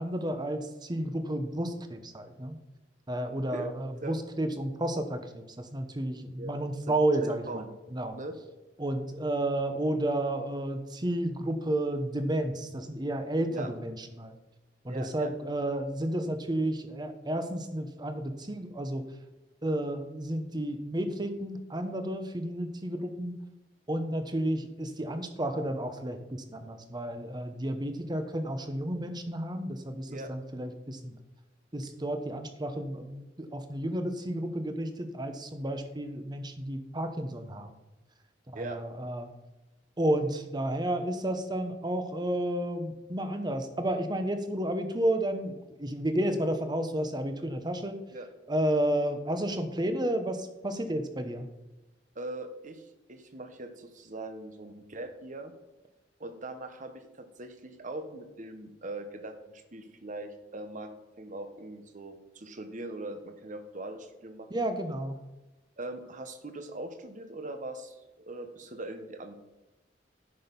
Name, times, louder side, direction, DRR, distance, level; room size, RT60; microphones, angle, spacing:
voice 1, 0.0-2.6 3.1-7.6 7.9-8.2 8.8-14.3 14.8-19.0 19.6-23.4 23.9-31.2 31.7-37.7 38.5-39.3 40.0-48.0 48.5-51.5 64.5-65.2, right 1 dB, 25° right, 7 dB, 1.0 m, -31 dB
voice 2, 6.9-7.7 8.1-8.3 13.5-13.7 14.9-15.6 30.1-30.3 38.5-38.8 48.1-48.3 52.1-55.5 56.2-60.9 61.2-64.7 65.8-69.3, right 2 dB, 45° right, 8 dB, 1.1 m, -41 dB
10.0 x 6.2 x 5.4 m, 1.1 s
head